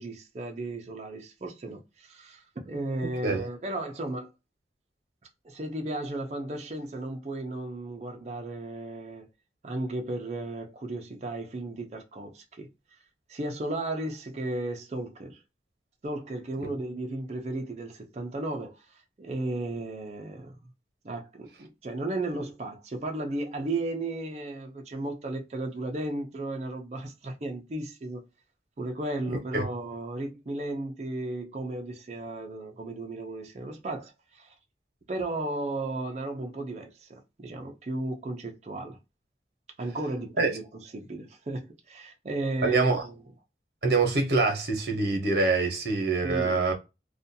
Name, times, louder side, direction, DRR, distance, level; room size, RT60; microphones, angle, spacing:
voice 1, 0.0-4.3 5.4-9.3 9.6-12.7 13.3-15.4 16.0-20.5 21.0-28.2 28.8-34.5 35.1-39.0 39.8-43.2 46.2-46.6, right 2 dB, 40° right, 0.4 m, -35 dB
voice 2, 42.6-43.0 43.8-46.7, right 3 dB, 60° right, 0.8 m, -25 dB
2.4 x 2.2 x 2.6 m
head